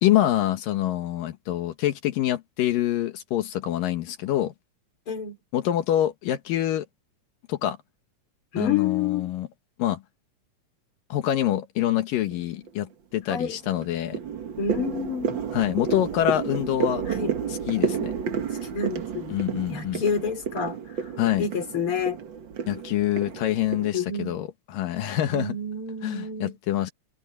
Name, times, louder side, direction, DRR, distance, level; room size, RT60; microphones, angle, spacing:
voice 1, 0.0-4.5 5.5-6.8 7.5-7.8 8.6-9.5 9.8-10.0 11.1-14.2 15.5-17.0 17.5-18.1 19.3-20.0 21.2-21.5 22.7-25.6 26.0-26.9, left 12 dB, 85° left, 3.0 m, -26 dB
voice 2, 5.1-5.4 8.5-9.3 13.3-13.6 14.6-15.4 17.1-17.3 18.7-19.4 19.7-21.1 21.4-22.2 23.9-24.4 25.3-26.5, left 5 dB, 40° left, 4.5 m, -29 dB
sound 1, 12.2-12.7 13.2-23.9, right 6 dB, 55° right, 1.4 m, -31 dB
omnidirectional pair, 3.8 m